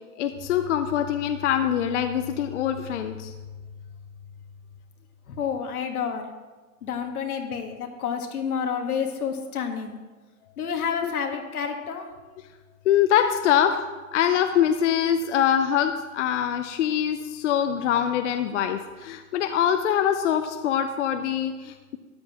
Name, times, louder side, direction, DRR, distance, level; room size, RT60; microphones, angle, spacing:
voice 1, 0.2-3.3 11.0-11.1 12.9-13.8 14.1-22.0, left 9 dB, 55° left, 7 dB, 0.6 m, -24 dB
voice 2, 5.3-6.3 6.8-10.0 10.6-12.1, left 7 dB, 90° left, 4 dB, 1.7 m, -29 dB
13.0 x 9.6 x 2.9 m, 1.3 s
hypercardioid pair, 160°, 43 cm